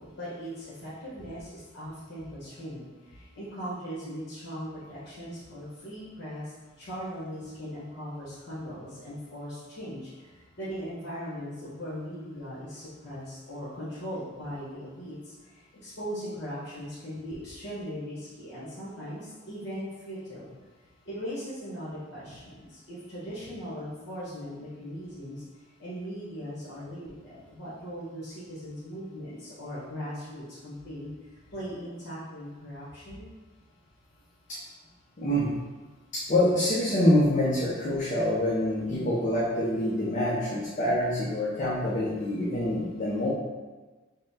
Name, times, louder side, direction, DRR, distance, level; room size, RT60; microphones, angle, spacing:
voice 1, 0.0-20.5 21.0-31.1 31.5-33.3, equal, 55° left, -10 dB, 1.1 m, -39 dB
voice 2, 35.2-35.5 36.1-43.3, left 1 dB, 40° left, -7 dB, 0.6 m, -26 dB
5.3 x 2.1 x 2.7 m, 1.3 s
head